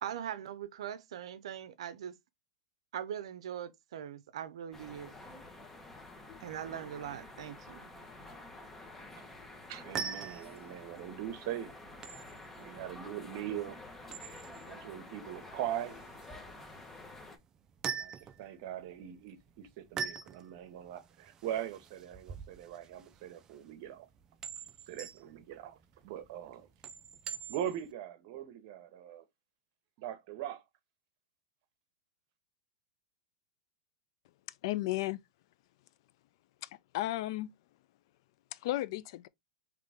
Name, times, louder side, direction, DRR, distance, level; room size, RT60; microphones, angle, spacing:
voice 1, 0.0-2.1 2.9-5.1 6.4-7.9, right 9 dB, 75° right, 0.5 m, -41 dB
sound 1, 4.7-17.4, left 2 dB, 10° left, 0.8 m, -50 dB
sound 2, 9.7-27.9, right 7 dB, 20° right, 0.4 m, -45 dB
voice 2, 9.7-11.7 12.6-13.8 14.7-16.0 17.9-24.1 24.9-26.7 27.5-29.2 30.0-30.6, right 11 dB, 50° right, 0.9 m, -41 dB
voice 3, 34.6-35.2 36.9-37.5 38.6-39.3, left 16 dB, 55° left, 0.3 m, -33 dB
3.8 x 3.1 x 3.4 m
supercardioid pair, 140°, 3 cm